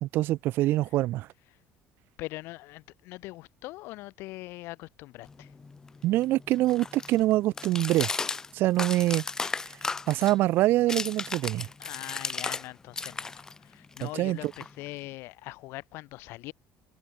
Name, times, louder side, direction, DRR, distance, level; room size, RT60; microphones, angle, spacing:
voice 1, 0.0-1.3 6.0-8.1 8.5-9.2 10.1-11.7 14.0-14.5, right 16 dB, 55° right, 0.8 m, -25 dB
voice 2, 2.2-5.5 11.8-16.5, left 20 dB, 65° left, 1.8 m, -42 dB
sound 1, 5.3-12.7 12.9-15.1, left 4 dB, 15° left, 0.3 m, -36 dB
cardioid pair, 170°, 5 cm